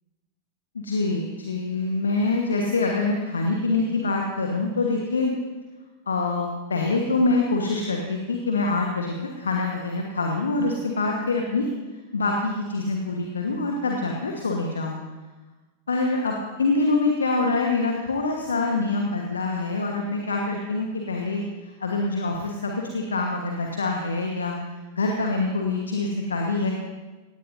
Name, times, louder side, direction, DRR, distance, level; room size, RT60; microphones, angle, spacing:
voice 1, 0.7-5.3 6.1-11.7 12.1-15.0 15.9-24.5 24.9-26.7, left 3 dB, 70° left, 1 dB, 1.4 m, -25 dB
17.5 x 16.5 x 2.7 m, 1.2 s
figure-of-eight pair, 90°, 0 cm